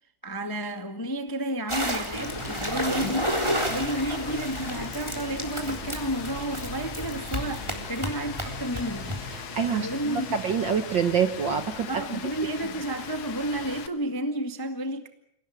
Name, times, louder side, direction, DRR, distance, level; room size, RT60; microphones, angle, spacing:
voice 1, 0.2-3.4 3.7-9.2 9.7-10.3 11.9-15.1, right 1 dB, 15° left, 0.7 m, -31 dB
sound 1, 1.7-9.4, equal, 10° right, 3.5 m, -32 dB
Rain, 2.1-13.9, left 9 dB, 65° left, 2.5 m, -41 dB
sound 2, 2.1-13.8, right 2 dB, 30° right, 1.5 m, -43 dB
voice 2, 9.5-12.0, right 7 dB, 60° right, 1.2 m, -26 dB
27.5 x 17.5 x 9.2 m
omnidirectional pair, 3.7 m